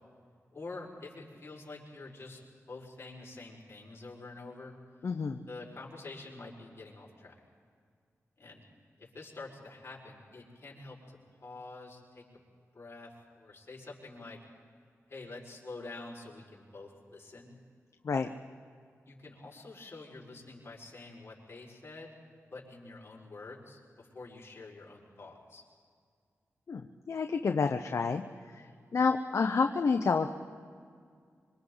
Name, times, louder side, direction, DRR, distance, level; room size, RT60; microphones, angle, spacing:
voice 1, 0.5-2.4 2.7-4.8 5.5-7.3 8.4-8.6 9.0-12.4 12.7-14.4 15.1-17.6 19.0-22.1 22.5-25.6 28.8-29.0, left 3 dB, 50° left, -3 dB, 5.2 m, -47 dB
voice 2, 5.0-5.4 18.0-18.3 26.7-30.3, left 5 dB, 65° left, 5 dB, 0.8 m, -29 dB
26.0 x 25.5 x 4.0 m, 2.1 s
cardioid pair, 70°, 5 cm